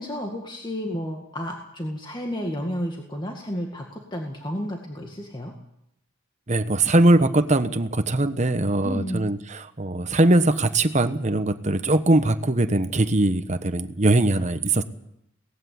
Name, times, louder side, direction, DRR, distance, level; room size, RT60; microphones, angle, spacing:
voice 1, 0.0-5.5 8.8-9.2, equal, 20° left, 1 dB, 2.0 m, -31 dB
voice 2, 6.5-14.8, right 2 dB, 35° right, 10 dB, 1.2 m, -21 dB
18.5 x 15.5 x 9.5 m, 0.78 s
head